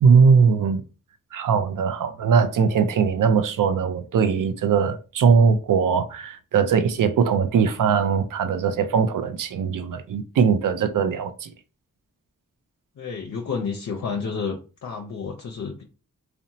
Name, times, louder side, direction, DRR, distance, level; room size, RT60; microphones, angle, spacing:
voice 1, 0.0-0.8 1.3-11.5, right 6 dB, 65° right, 0.5 m, -20 dB
voice 2, 13.0-15.8, left 5 dB, 55° left, 0.5 m, -30 dB
2.8 x 2.1 x 2.6 m
cardioid pair, 45°, 34 cm